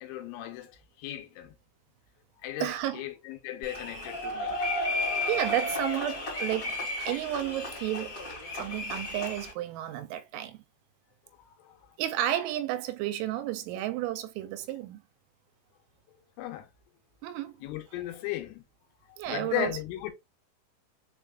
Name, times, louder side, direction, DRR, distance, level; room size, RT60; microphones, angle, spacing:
voice 1, 0.0-0.7 1.0-1.6 2.4-4.6 11.4-11.9 16.4-16.7 17.6-18.6 19.3-20.1, left 14 dB, 90° left, 3.3 m, -36 dB
voice 2, 2.6-3.0 5.3-6.7 7.1-10.6 12.0-15.0 17.2-17.6 19.2-19.8, right 12 dB, 85° right, 2.9 m, -32 dB
sound 1, 3.6-9.5, left 2 dB, 50° left, 1.0 m, -33 dB
6.9 x 2.4 x 2.3 m
omnidirectional pair, 5.4 m